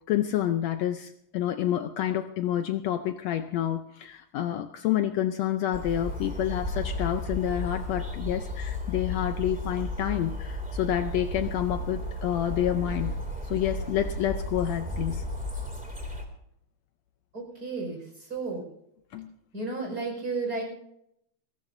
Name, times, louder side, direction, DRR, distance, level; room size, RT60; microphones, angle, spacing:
voice 1, 0.1-13.1 13.4-15.2 19.1-19.3, left 11 dB, 75° left, 8 dB, 1.8 m, -28 dB
sound 1, 5.7-16.2, left 1 dB, 5° right, 2.1 m, -33 dB
voice 2, 17.3-18.0 18.3-18.6 19.5-20.6, right 3 dB, 30° right, 1 dB, 5.6 m, -32 dB
22.0 x 17.0 x 2.7 m, 0.75 s
omnidirectional pair, 3.4 m